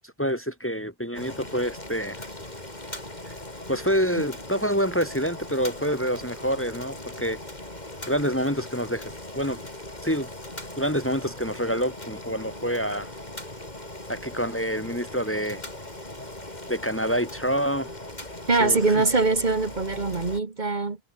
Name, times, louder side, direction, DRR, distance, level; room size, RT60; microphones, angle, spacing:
voice 1, 0.2-2.2 3.7-7.4 8.1-9.6 10.0-10.3 10.8-13.1 14.1-15.6 16.7-17.9 18.6-19.0, equal, 10° left, 1.8 m, -27 dB
Boiling, 1.1-20.4, left 1 dB, 45° left, 4.7 m, -39 dB
voice 2, 18.5-21.0, right 3 dB, 45° right, 1.6 m, -23 dB
omnidirectional pair, 1.1 m